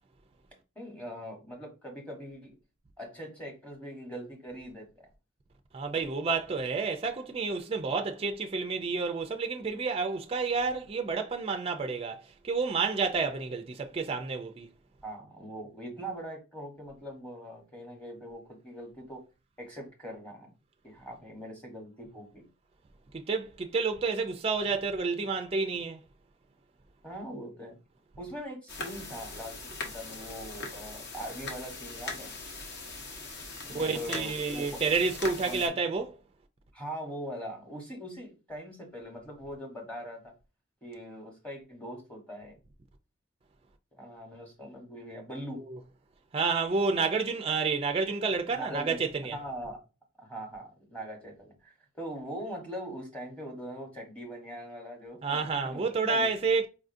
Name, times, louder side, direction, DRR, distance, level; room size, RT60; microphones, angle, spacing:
voice 1, 0.8-2.6 3.0-5.1 15.0-19.2 19.6-20.5 20.8-22.5 27.0-27.8 28.2-32.3 33.6-34.8 35.5-35.7 36.7-40.3 40.8-42.6 43.9-45.6 48.5-49.0 49.3-49.8 50.2-56.3, equal, 5° left, 0.9 m, -42 dB
voice 2, 5.7-14.7 23.1-26.0 33.7-36.1 46.3-49.4 55.2-56.7, right 4 dB, 30° right, 0.3 m, -30 dB
sound 1, 28.7-35.7, left 3 dB, 50° left, 0.8 m, -41 dB
4.8 x 2.4 x 2.5 m
head